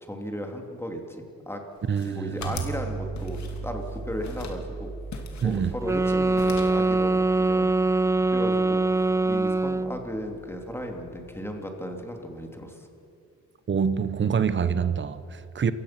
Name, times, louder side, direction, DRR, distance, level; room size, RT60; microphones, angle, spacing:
voice 1, 0.0-1.6 2.0-4.9 5.4-7.7 8.3-8.8 9.2-12.9, equal, 10° left, 2.9 m, -35 dB
sound 1, 1.8-2.8 3.2-3.9 4.2-4.6 5.1-6.1 6.3-6.9, left 6 dB, 65° left, 2.9 m, -41 dB
voice 2, 1.9-2.5 5.4-5.7 13.7-15.7, right 7 dB, 40° right, 1.1 m, -26 dB
sound 2, 2.4-11.4, right 4 dB, 70° right, 5.7 m, -39 dB
sound 3, 5.8-10.0, right 2 dB, 10° right, 0.4 m, -23 dB
28.0 x 16.0 x 6.1 m
cardioid pair, 90°, 30 cm